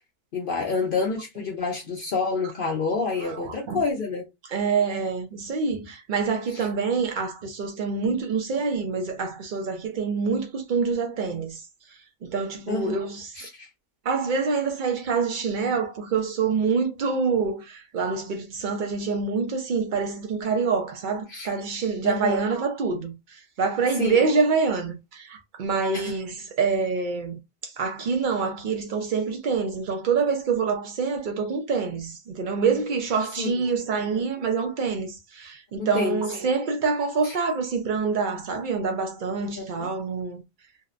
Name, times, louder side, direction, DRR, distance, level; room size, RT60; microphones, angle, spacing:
voice 1, 0.3-4.3 6.5-6.6 12.7-12.9 13.3-13.7 21.3-21.5 22.0-22.4 24.0-24.2 25.9-26.1 33.4-33.5 34.1-34.2 35.8-36.2 37.2-37.3 39.4-39.9, left 4 dB, 60° left, 0.6 m, -28 dB
voice 2, 3.2-3.8 4.5-11.6 12.2-13.4 14.0-27.4 27.6-40.4, right 5 dB, 75° right, 0.4 m, -26 dB
2.7 x 2.1 x 2.4 m
omnidirectional pair, 1.4 m